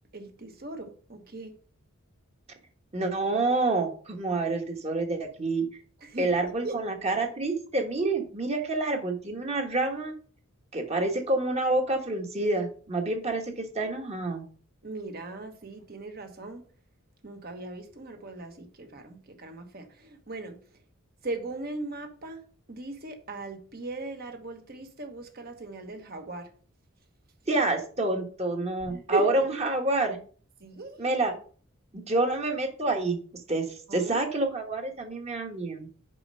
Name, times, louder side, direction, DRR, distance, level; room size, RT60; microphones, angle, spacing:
voice 1, 0.1-1.5 6.0-6.3 6.6-6.7 14.8-16.6 17.2-20.6 21.2-26.5 28.8-29.3 30.6-31.0 33.9-34.1, right 2 dB, 45° right, 1.3 m, -38 dB
voice 2, 2.9-5.6 6.2-10.1 10.7-14.4 27.5-30.2 31.0-31.3 32.1-33.2 33.5-33.6 33.9-35.9, right 2 dB, 30° right, 1.4 m, -28 dB
6.9 x 5.4 x 5.4 m
head